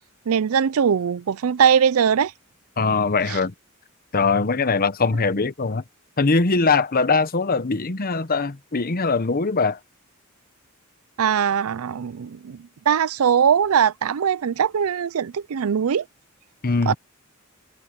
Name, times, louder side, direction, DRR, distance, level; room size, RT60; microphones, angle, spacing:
voice 1, 0.3-2.3 3.3-3.4 11.2-16.0 16.9-17.0, right 7 dB, 85° right, 0.4 m, -21 dB
voice 2, 2.8-3.5 4.1-5.8 6.2-9.8 16.6-16.9, left 4 dB, 45° left, 0.9 m, -21 dB
head